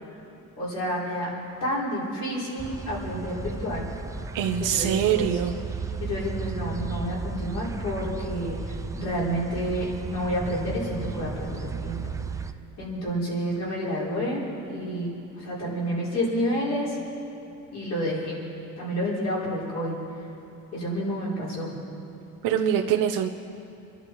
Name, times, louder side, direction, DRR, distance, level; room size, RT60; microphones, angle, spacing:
voice 1, 0.6-1.3 1.6-3.9 4.6-5.4 6.0-12.1 12.8-17.0 17.7-18.4 18.8-20.0 20.7-21.7, equal, 55° left, -5 dB, 4.8 m, -29 dB
sound 1, 2.6-12.5, right 4 dB, 10° right, 0.4 m, -34 dB
voice 2, 4.3-5.5 22.4-23.3, right 9 dB, 85° right, 2 dB, 0.9 m, -24 dB
27.5 x 11.0 x 4.7 m, 2.8 s
cardioid pair, 165°, 32 cm